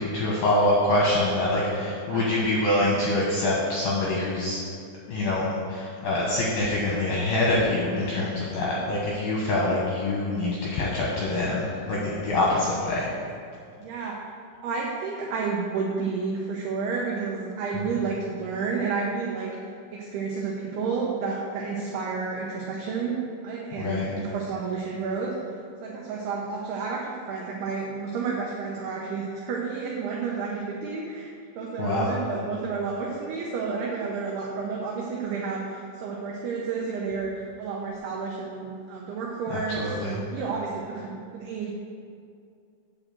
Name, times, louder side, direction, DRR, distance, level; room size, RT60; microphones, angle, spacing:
voice 1, 0.0-4.6 5.1-5.4 5.7-13.1 17.7-17.8 23.8-24.1 31.8-32.1 39.5-40.2, left 2 dB, 70° left, -5 dB, 2.2 m, -25 dB
voice 2, 13.8-14.2 14.6-19.5 19.9-25.3 25.8-41.7, right 5 dB, 80° right, -2 dB, 2.4 m, -31 dB
8.9 x 4.8 x 7.4 m, 2.3 s
omnidirectional pair, 5.7 m